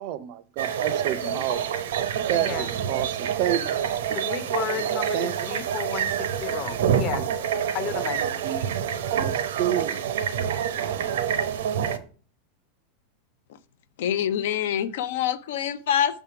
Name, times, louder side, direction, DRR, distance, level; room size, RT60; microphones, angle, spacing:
voice 1, 0.0-1.6 2.3-3.6 4.7-4.9 5.1-5.3 7.2-7.3 7.9-8.7 9.2-10.0 10.7-11.3, right 11 dB, 45° right, 0.5 m, -30 dB
sound 1, 0.6-12.0, right 8 dB, 90° right, 0.8 m, -27 dB
voice 2, 2.3-2.7 4.1-7.2 7.7-8.2, left 9 dB, 40° left, 0.8 m, -33 dB
voice 3, 14.0-16.2, left 9 dB, 75° left, 0.5 m, -25 dB
6.8 x 3.6 x 5.8 m
supercardioid pair, 165°, 0 cm